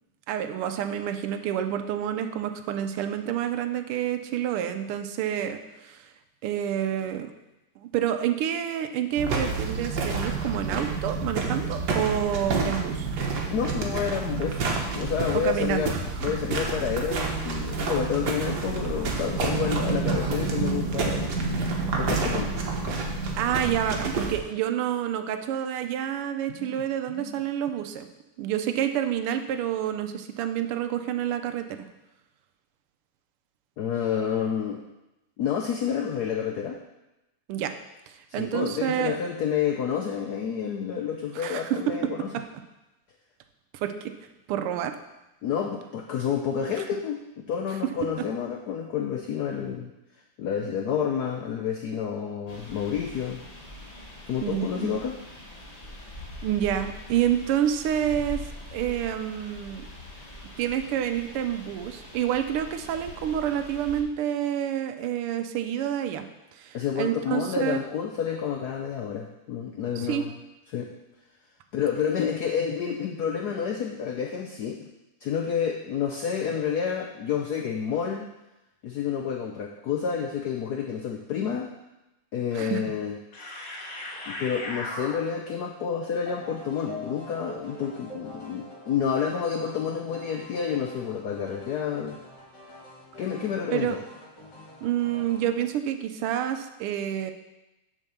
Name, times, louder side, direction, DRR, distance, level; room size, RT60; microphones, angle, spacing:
voice 1, 0.3-6.1 6.4-7.3 7.8-13.1 15.4-16.0 23.4-28.1 28.4-31.6 37.5-37.7 38.1-39.2 41.3-41.8 43.8-44.1 44.5-44.9 54.4-55.0 56.4-58.4 58.7-59.8 60.6-66.3 66.5-67.8 70.0-70.2 82.5-82.8 93.7-93.9 94.8-97.3, right 10 dB, 90° right, 8 dB, 1.6 m, -28 dB
sound 1, 9.2-24.4, right 4 dB, 55° right, 1.5 m, -29 dB
voice 2, 13.5-14.6 14.9-15.9 16.2-21.4 22.0-22.5 26.5-26.8 27.1-27.4 33.8-34.8 35.4-36.8 38.3-42.3 45.4-49.9 50.4-53.4 54.3-55.2 66.7-70.3 70.7-70.9 71.7-74.9 75.2-78.3 78.8-81.7 82.3-83.2 84.3-92.2 93.2-94.0, left 7 dB, 85° left, 3 dB, 0.8 m, -29 dB
sound 2, 52.5-64.0, left 1 dB, 35° left, 0.6 m, -43 dB
sound 3, 83.3-85.5 86.3-95.6, left 1 dB, 50° left, 2.3 m, -42 dB
7.2 x 4.6 x 6.8 m, 0.97 s
omnidirectional pair, 2.4 m